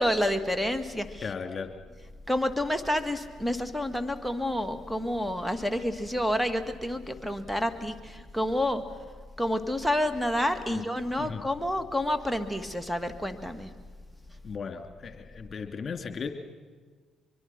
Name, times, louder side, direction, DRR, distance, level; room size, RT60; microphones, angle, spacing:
voice 1, 0.0-1.2 2.3-8.8 9.4-13.7, left 1 dB, ahead, 9 dB, 2.2 m, -29 dB
voice 2, 1.2-1.7 10.7-10.9 11.2-11.4 14.4-16.3, left 5 dB, 45° left, 6 dB, 2.8 m, -36 dB
24.0 x 23.5 x 6.0 m, 1.5 s
supercardioid pair, 60°, 0 cm